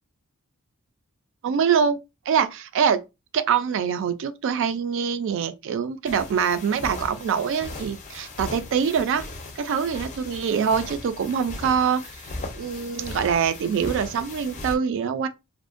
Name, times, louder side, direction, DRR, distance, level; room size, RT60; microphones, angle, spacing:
voice 1, 1.4-2.0 2.3-3.0 3.3-9.3 9.6-12.0 12.5-15.3, right 7 dB, 60° right, 0.3 m, -24 dB
sound 1, 6.1-14.8, left 2 dB, 35° left, 0.5 m, -38 dB
2.5 x 2.1 x 2.4 m
head